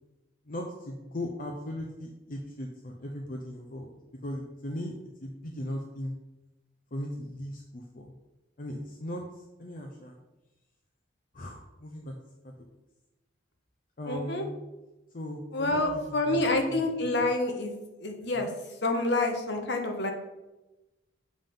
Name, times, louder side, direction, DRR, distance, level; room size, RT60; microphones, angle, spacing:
voice 1, 0.5-3.9 4.2-4.9 5.2-6.1 6.9-8.1 8.6-10.1 11.3-12.2 12.4-12.5 14.0-14.5 15.1-17.3 18.3-18.6, left 1 dB, 45° left, 2 dB, 0.6 m, -38 dB
voice 2, 14.1-14.4 15.5-17.8 18.0-18.5 18.8-20.1, left 2 dB, 60° left, 4 dB, 1.0 m, -28 dB
7.3 x 3.6 x 5.3 m, 1.0 s
head